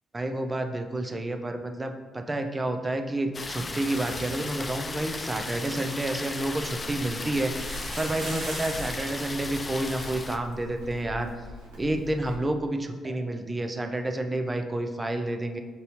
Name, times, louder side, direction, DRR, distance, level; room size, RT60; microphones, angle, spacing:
voice 1, 0.1-7.5 8.0-11.3 11.8-15.6, right 1 dB, 25° right, 5 dB, 0.5 m, -29 dB
sound 1, 3.3-10.4, left 3 dB, 30° left, 0.4 m, -36 dB
Livestock farm animals working animals, 6.3-12.4, left 2 dB, 80° right, 0.7 m, -43 dB
sound 2, 7.5-9.2 9.4-9.5 9.7-10.0 10.5-10.6 10.9-11.0 13.0-13.1, right 1 dB, 50° right, 1.3 m, -39 dB
5.3 x 2.7 x 2.8 m, 1.4 s
hypercardioid pair, 45°, 0 cm